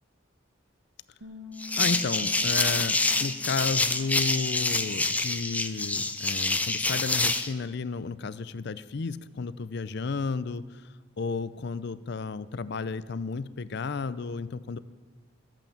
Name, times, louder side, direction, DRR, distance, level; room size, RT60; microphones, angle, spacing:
Bass guitar, 1.2-7.5, left 2 dB, 85° right, 1.3 m, -49 dB
sound 1, 1.6-7.5, left 3 dB, 5° left, 0.5 m, -27 dB
voice 1, 1.8-10.8 11.2-14.8, left 4 dB, 55° left, 15 dB, 0.5 m, -32 dB
14.0 x 8.9 x 7.2 m, 1.4 s
head